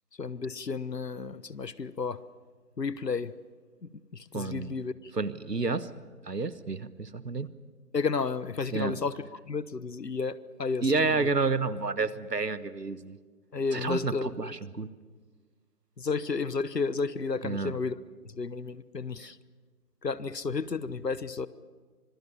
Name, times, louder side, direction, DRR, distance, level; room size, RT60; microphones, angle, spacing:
voice 1, 0.2-2.2 2.8-3.3 3.8-5.1 7.9-9.1 9.5-11.3 13.5-14.5 16.0-17.9 18.2-19.4 20.0-21.5, left 4 dB, 85° left, 17 dB, 1.2 m, -32 dB
voice 2, 4.3-4.8 5.1-5.9 6.2-7.5 8.7-9.0 10.8-13.2 13.7-14.9 17.4-17.8 19.2-19.3, right 3 dB, 80° right, 15 dB, 1.5 m, -30 dB
25.5 x 21.0 x 7.2 m, 1.4 s
figure-of-eight pair, 170°, 48 cm